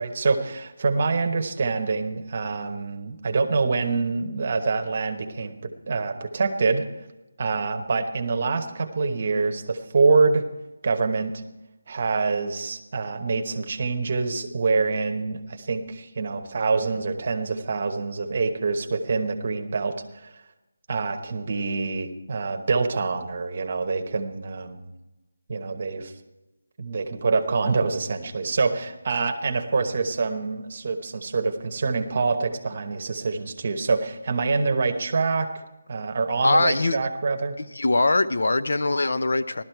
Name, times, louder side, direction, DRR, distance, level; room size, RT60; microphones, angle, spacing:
voice 1, 0.0-6.8 7.4-10.4 10.8-11.4 11.9-19.9 20.2-20.3 20.9-24.8 25.5-26.1 26.8-35.5 35.9-37.5, right 4 dB, 30° right, 1.0 m, -25 dB
voice 2, 36.4-37.1 37.7-39.6, left 2 dB, 55° left, 0.6 m, -22 dB
16.0 x 12.5 x 4.5 m
figure-of-eight pair, 180°, 0 cm